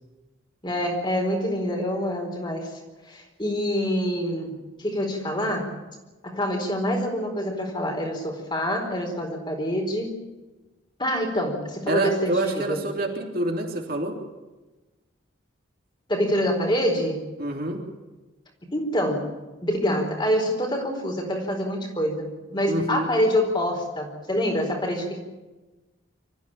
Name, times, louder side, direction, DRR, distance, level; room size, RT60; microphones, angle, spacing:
voice 1, 0.6-2.7 3.1-5.7 6.2-10.2 11.0-12.8 16.1-17.3 18.7-19.3 19.6-25.2, equal, 25° left, 2 dB, 4.4 m, -26 dB
voice 2, 11.9-14.2 17.4-17.8 22.7-23.1, right 1 dB, 50° right, 1 dB, 3.5 m, -27 dB
25.5 x 14.5 x 8.9 m, 1.1 s
head